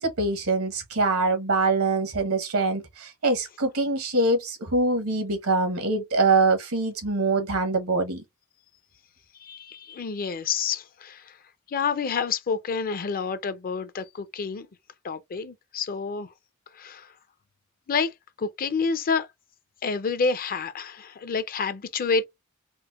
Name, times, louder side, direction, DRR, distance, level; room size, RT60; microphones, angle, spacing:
voice 1, 0.0-8.2, right 3 dB, 80° right, 1.2 m, -24 dB
voice 2, 9.4-11.3 11.7-14.7 15.0-16.3 16.7-17.1 17.9-18.1 18.4-19.3 19.8-22.2, left 5 dB, 40° left, 0.5 m, -28 dB
4.4 x 2.1 x 2.4 m
head